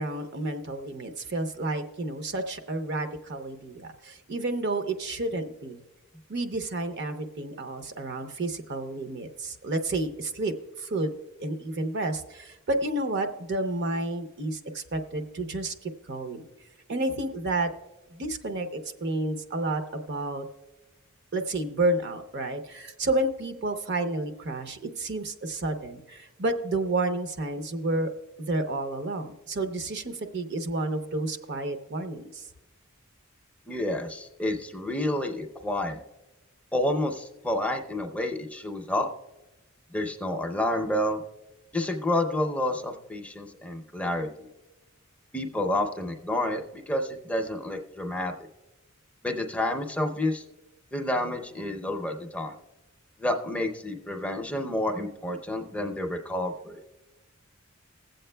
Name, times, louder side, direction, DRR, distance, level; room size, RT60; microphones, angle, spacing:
voice 1, 0.0-5.8 6.3-11.1 11.4-16.5 16.9-17.7 18.1-20.4 21.3-28.1 28.4-32.5, right 2 dB, 50° right, 8 dB, 0.7 m, -30 dB
voice 2, 33.7-36.0 36.7-39.1 39.9-41.2 41.7-44.5 45.3-48.5 49.2-50.4 50.9-52.5 53.2-56.8, left 1 dB, 5° left, 3 dB, 0.5 m, -29 dB
20.5 x 7.8 x 2.2 m, 1.1 s
head